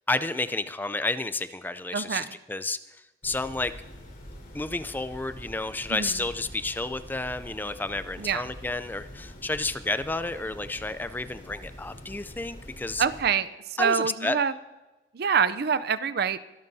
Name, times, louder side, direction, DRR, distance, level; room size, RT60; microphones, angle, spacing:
voice 1, 0.1-2.8 3.2-3.7 4.5-13.1 13.8-14.4, left 2 dB, 10° left, 12 dB, 0.4 m, -31 dB
voice 2, 1.9-2.4 5.9-6.2 8.2-8.4 13.0-14.5 15.1-16.4, right 7 dB, 60° right, 15 dB, 0.5 m, -26 dB
sound 1, 3.2-13.2, equal, 60° left, 4.1 m, -45 dB
23.0 x 12.5 x 2.7 m, 1.1 s
head